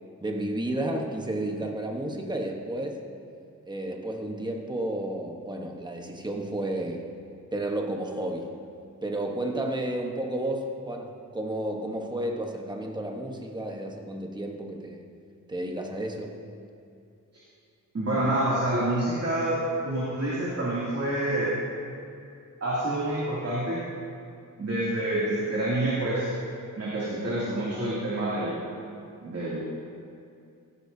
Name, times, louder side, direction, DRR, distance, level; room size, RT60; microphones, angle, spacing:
voice 1, 0.2-3.0 3.7-7.1 7.5-8.6 9.0-15.1 15.5-16.4, right 1 dB, 15° right, 1 dB, 1.1 m, -32 dB
voice 2, 17.9-19.6 19.8-21.5 22.6-23.8 24.6-26.3 26.7-28.6 29.2-29.6, right 1 dB, 45° right, -8 dB, 2.6 m, -27 dB
17.0 x 15.5 x 2.7 m, 2.5 s
wide cardioid pair, 180°, 33 cm